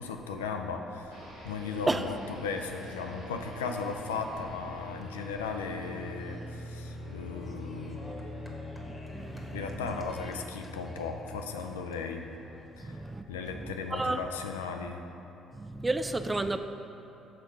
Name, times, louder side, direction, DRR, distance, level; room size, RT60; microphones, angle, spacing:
voice 1, 0.0-8.6 9.5-12.2 12.8-13.0 13.3-15.0, left 5 dB, 75° left, 4 dB, 0.4 m, -37 dB
sound 1, 0.9-14.3, left 1 dB, 20° left, 1.1 m, -54 dB
sound 2, 1.1-13.3, left 1 dB, 60° right, 1.3 m, -44 dB
voice 2, 8.8-10.0 12.8-14.2 15.5-16.6, right 2 dB, 20° right, 9 dB, 0.3 m, -33 dB
6.5 x 4.4 x 5.3 m, 2.9 s
figure-of-eight pair, 45°, 0 cm